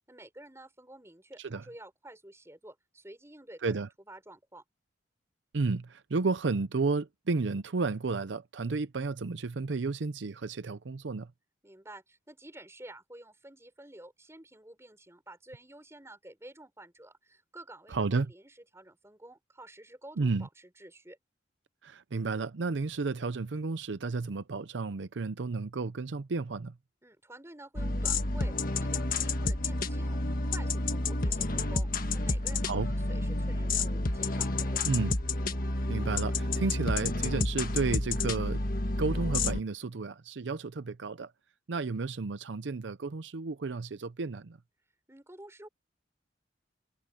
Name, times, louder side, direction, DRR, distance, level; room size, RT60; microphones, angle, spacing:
voice 1, 0.1-4.6 11.6-21.2 27.0-34.9 45.1-45.7, right 1 dB, 15° right, 5.6 m, -50 dB
voice 2, 5.5-11.3 17.9-18.3 20.2-20.5 21.8-26.7 32.6-32.9 34.8-35.1 35.9-38.6 39.0-41.3 41.7-44.6, right 4 dB, 75° right, 0.6 m, -32 dB
sound 1, 27.8-39.6, left 2 dB, 50° left, 1.6 m, -30 dB
head